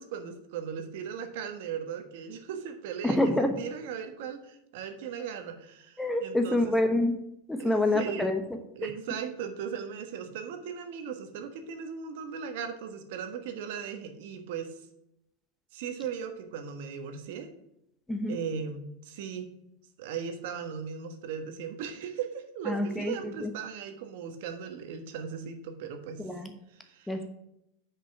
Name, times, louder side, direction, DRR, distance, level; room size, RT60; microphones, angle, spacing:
voice 1, 0.0-6.7 7.6-8.4 8.8-14.8 15.7-17.5 18.3-19.5 20.0-26.3 26.7-27.2, right 7 dB, 70° right, 7 dB, 1.3 m, -38 dB
voice 2, 3.0-3.6 6.0-7.2 7.5-8.4 18.1-18.4 22.7-23.1 23.4-23.5 26.2-26.5 27.1-27.3, left 1 dB, 5° left, 6 dB, 0.9 m, -26 dB
6.1 x 5.2 x 6.1 m, 0.82 s
supercardioid pair, 130°, 0 cm